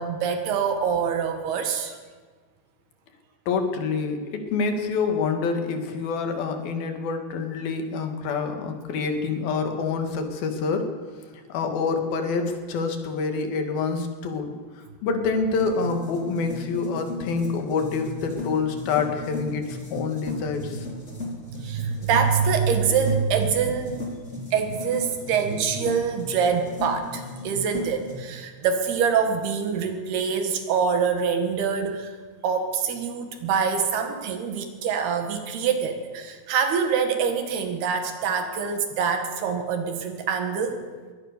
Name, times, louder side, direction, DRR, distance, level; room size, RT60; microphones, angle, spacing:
voice 1, 0.0-2.0 21.1-21.2 21.5-24.0 24.5-32.1 32.4-40.8, right 6 dB, 70° right, 6 dB, 3.8 m, -25 dB
voice 2, 3.5-10.9 11.5-14.6 15.0-20.9, left 4 dB, 65° left, 5 dB, 3.8 m, -27 dB
sound 1, 15.6-28.2, left 2 dB, 15° left, 3.4 m, -36 dB
22.5 x 17.0 x 6.8 m, 1.5 s
omnidirectional pair, 4.8 m